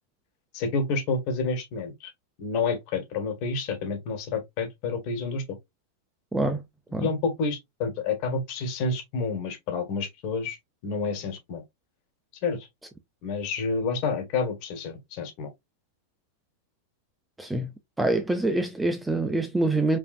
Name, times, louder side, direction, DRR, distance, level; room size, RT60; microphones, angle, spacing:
voice 1, 0.5-2.1 2.4-5.6 7.0-10.6 10.8-11.6 12.4-12.7 13.2-15.5, left 4 dB, 45° left, 1.5 m, -29 dB
voice 2, 6.3-6.6 6.9-7.1 17.4-17.7 18.0-20.0, right 2 dB, 5° right, 0.4 m, -25 dB
5.1 x 2.6 x 2.5 m
supercardioid pair, 150°, 0 cm